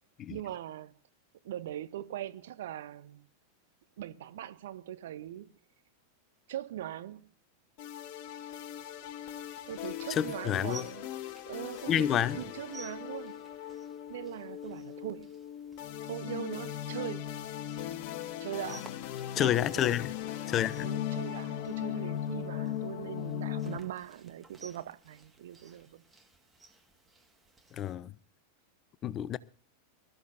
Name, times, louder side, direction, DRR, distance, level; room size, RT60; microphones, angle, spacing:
voice 1, 0.3-0.9 1.4-3.2 4.0-5.5 6.5-7.3 9.7-11.1 11.5-13.4 14.1-15.3 16.0-17.3 18.4-18.9 19.4-20.0 20.7-26.0, right 12 dB, 55° right, 0.8 m, -41 dB
sound 1, 7.8-23.8, left 11 dB, 45° left, 1.0 m, -39 dB
sound 2, 8.5-27.9, right 2 dB, 10° right, 1.7 m, -57 dB
voice 2, 10.1-10.8 11.9-12.4 19.4-20.1 20.5-20.9 27.7-28.1 29.0-29.4, left 10 dB, 30° left, 0.6 m, -29 dB
23.0 x 13.5 x 2.6 m
figure-of-eight pair, 90°, 0 cm